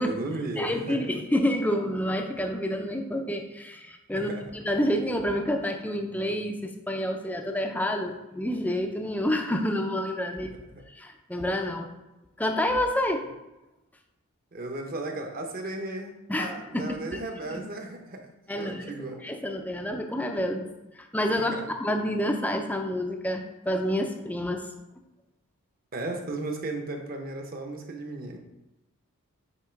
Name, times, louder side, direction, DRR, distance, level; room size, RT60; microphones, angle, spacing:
voice 1, 0.0-1.0 4.2-4.4 10.7-10.8 14.5-16.1 16.4-18.3 18.5-19.2 21.4-21.6 25.9-28.4, right 2 dB, 45° right, 3 dB, 0.9 m, -35 dB
voice 2, 0.6-10.5 10.9-11.9 12.4-13.2 16.3-17.2 17.5-17.6 18.5-18.9 19.2-20.7 20.9-24.7, left 1 dB, 5° left, 4 dB, 0.5 m, -28 dB
8.3 x 3.0 x 4.5 m, 0.98 s
head